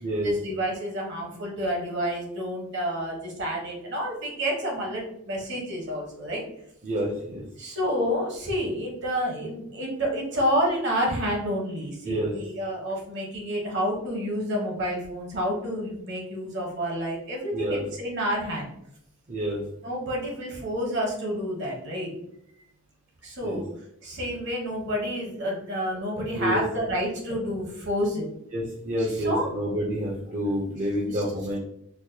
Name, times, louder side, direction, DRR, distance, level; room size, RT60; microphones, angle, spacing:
voice 1, 0.2-6.4 7.6-18.7 19.8-22.1 23.2-23.7 24.0-28.3 29.0-29.5 31.1-31.2, equal, 55° right, -1 dB, 1.1 m, -29 dB
voice 2, 6.8-7.4 12.0-12.3 17.5-17.8 19.3-19.6 23.4-23.6 26.3-26.6 28.5-31.6, equal, 35° right, -4 dB, 0.6 m, -28 dB
4.5 x 2.2 x 2.7 m, 0.74 s
head